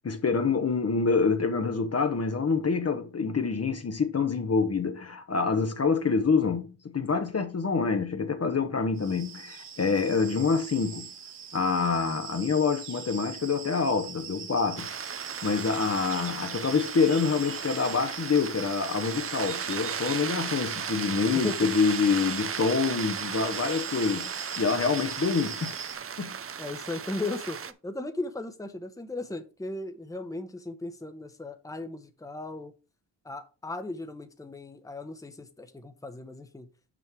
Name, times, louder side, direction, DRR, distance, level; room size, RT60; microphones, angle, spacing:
voice 1, 0.0-11.1 11.5-14.9 15.4-25.7 26.2-26.4, left 5 dB, 35° left, 1.1 m, -26 dB
sound 1, 9.0-26.0, right 7 dB, 65° right, 1.4 m, -42 dB
sound 2, 14.8-27.7, right 7 dB, 30° right, 0.6 m, -36 dB
voice 2, 26.6-32.7 33.2-36.7, left 2 dB, 5° left, 1.1 m, -37 dB
6.2 x 5.3 x 4.7 m
supercardioid pair, 50°, 45 cm